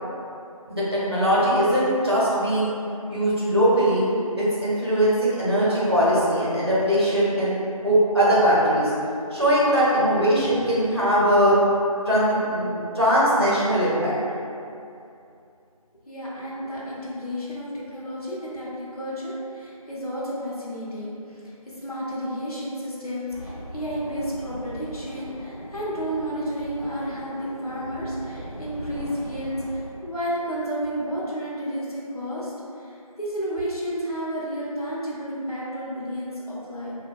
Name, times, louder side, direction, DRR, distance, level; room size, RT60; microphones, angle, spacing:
voice 1, 0.7-2.7 3.1-4.0 4.4-7.6 7.8-8.9 9.3-11.6 12.1-14.1, equal, 45° right, -9 dB, 0.7 m, -20 dB
voice 2, 16.1-36.9, equal, 80° left, -7 dB, 0.7 m, -31 dB
sound 1, 23.3-29.9, equal, 40° left, 0.4 m, -39 dB
2.6 x 2.1 x 2.5 m, 2.6 s
figure-of-eight pair, 175°, 19 cm